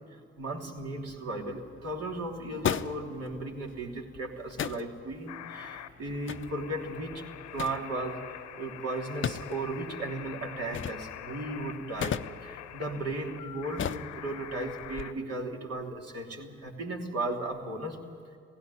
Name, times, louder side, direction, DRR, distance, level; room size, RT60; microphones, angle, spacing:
voice 1, 0.4-7.3 7.5-8.2 8.6-18.0, right 2 dB, 60° right, 0 dB, 3.2 m, -36 dB
sound 1, 0.9-15.0, left 8 dB, 45° left, 0.8 m, -39 dB
sound 2, 5.3-15.1, left 11 dB, 70° left, 1.1 m, -45 dB
17.5 x 16.5 x 9.5 m, 2.4 s
hypercardioid pair, 50°, 29 cm